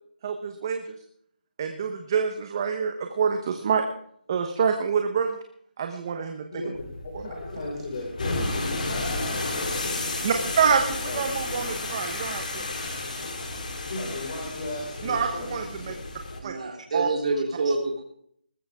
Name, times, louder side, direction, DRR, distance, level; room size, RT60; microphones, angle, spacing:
voice 1, 0.2-1.0 1.6-3.8 4.3-5.4 5.8-6.4 7.1-7.2 10.2-12.6 15.0-15.9 16.4-16.5 16.9-17.1, right 6 dB, 25° right, 5 dB, 1.1 m, -26 dB
sound 1, 6.7-16.4, left 2 dB, 50° left, 3.8 m, -32 dB
voice 2, 7.2-10.5 11.0-11.2 11.5-11.7 13.9-15.9, left 2 dB, 35° left, -2 dB, 5.3 m, -36 dB
voice 3, 16.4-18.0, right 3 dB, 40° right, -2 dB, 3.4 m, -27 dB
20.5 x 14.5 x 3.7 m, 0.65 s
hypercardioid pair, 175°, 5 cm